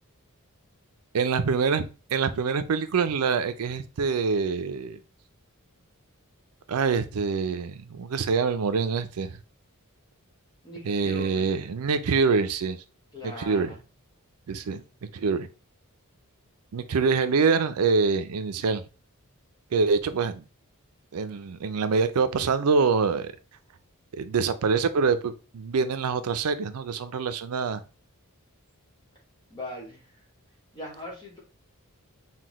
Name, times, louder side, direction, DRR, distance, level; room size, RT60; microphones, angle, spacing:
voice 1, 1.1-5.0 6.7-9.4 10.8-12.8 13.4-13.7 14.5-14.8 15.1-15.5 16.7-18.8 19.7-20.4 21.1-23.3 24.1-27.8, right 5 dB, 75° right, 11 dB, 0.5 m, -25 dB
voice 2, 10.6-11.5 13.1-13.8 29.5-30.2 30.7-31.4, left 1 dB, 20° left, -2 dB, 1.1 m, -40 dB
5.8 x 2.2 x 3.0 m, 0.33 s
head